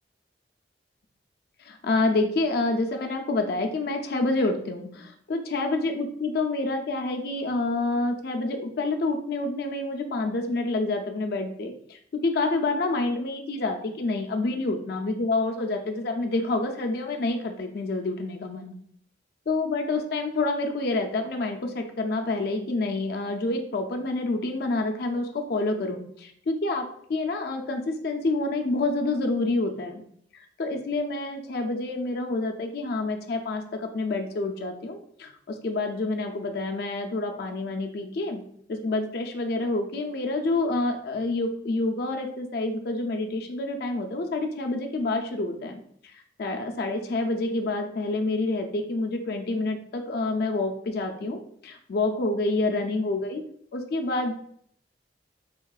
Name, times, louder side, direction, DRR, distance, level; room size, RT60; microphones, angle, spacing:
voice 1, 1.6-18.7 19.5-30.0 30.3-38.4 38.7-45.8 46.4-53.4 53.7-54.3, left 2 dB, 55° left, 3 dB, 0.4 m, -28 dB
3.5 x 2.3 x 2.3 m, 0.64 s
head